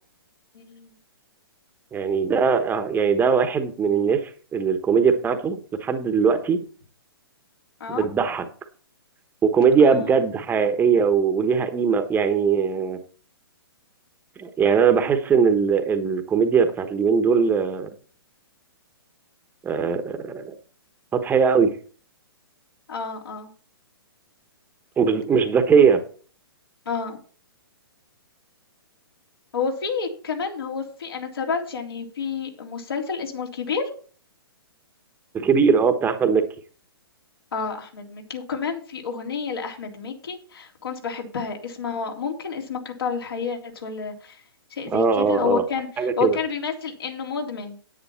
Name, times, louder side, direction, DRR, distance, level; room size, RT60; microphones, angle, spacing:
voice 1, 0.5-0.9 7.8-8.1 9.8-10.1 22.9-23.5 26.8-27.2 29.5-33.8 37.5-44.4 44.7-47.8, left 5 dB, 70° left, 1 dB, 3.4 m, -29 dB
voice 2, 1.9-6.6 7.9-8.5 9.4-13.0 14.4-17.9 19.6-20.5 21.1-21.8 25.0-26.0 35.3-36.4 44.9-45.6 46.0-46.4, right 6 dB, 15° right, 8 dB, 1.1 m, -20 dB
10.0 x 9.4 x 4.4 m, 0.41 s
hypercardioid pair, 125°, 13 cm